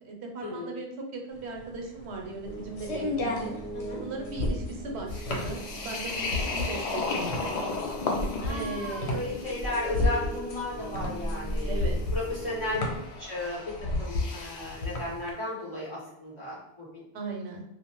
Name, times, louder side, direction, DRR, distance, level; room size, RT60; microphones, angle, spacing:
voice 1, 0.0-3.5 4.0-7.5 8.5-9.2 11.6-12.0 12.7-13.0 17.1-17.6, right 3 dB, 90° right, 1 dB, 0.9 m, -38 dB
sound 1, 1.4-15.3, left 2 dB, 85° left, 0.9 m, -33 dB
sound 2, 2.4-13.0, right 1 dB, 40° right, 0.6 m, -39 dB
sound 3, 5.1-14.9, left 3 dB, 55° left, 0.5 m, -36 dB
voice 2, 8.3-12.8 13.2-17.0, left 2 dB, 25° left, -7 dB, 1.3 m, -35 dB
2.5 x 2.2 x 2.9 m, 0.81 s
omnidirectional pair, 1.1 m